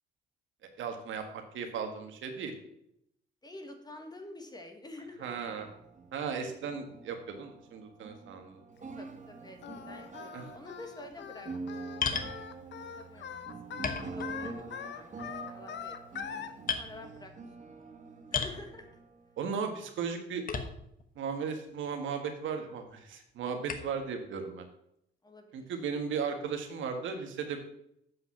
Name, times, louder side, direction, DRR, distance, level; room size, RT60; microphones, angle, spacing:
voice 1, 0.8-2.5 5.2-5.7 6.1-9.0 10.3-10.4 19.4-20.4 21.1-24.7 25.5-27.6, right 6 dB, 75° right, 5 dB, 1.5 m, -36 dB
voice 2, 3.4-5.3 9.0-9.6 9.8-11.5 12.2-12.5 12.9-13.4 13.7-15.1 15.3-16.4 16.7-17.3 18.3-18.9 25.2-25.7, left 2 dB, 20° left, 5 dB, 1.6 m, -48 dB
sound 1, 5.2-19.9, right 4 dB, 40° right, 1.3 m, -46 dB
Singing, 9.6-16.5, left 8 dB, 65° left, 0.8 m, -42 dB
sound 2, 12.0-12.4 13.2-13.3 13.8-14.7 15.0-15.4 16.0-16.3 16.7-16.9 18.3-18.6 20.5-21.0 21.7-21.8 23.7-24.0, left 6 dB, 45° left, 1.1 m, -34 dB
7.9 x 5.7 x 5.6 m, 0.75 s
cardioid pair, 90°, 20 cm